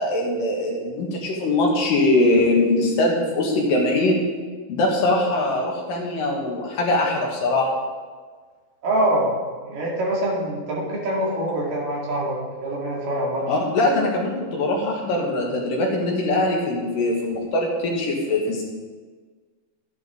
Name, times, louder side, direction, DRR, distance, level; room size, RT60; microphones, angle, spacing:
voice 1, 0.0-4.2 4.7-7.7 13.5-18.6, left 2 dB, 65° left, -1 dB, 3.1 m, -22 dB
voice 2, 8.8-9.3 9.6-13.6, right 1 dB, 60° right, -4 dB, 3.7 m, -24 dB
13.5 x 10.5 x 3.7 m, 1.5 s
omnidirectional pair, 4.4 m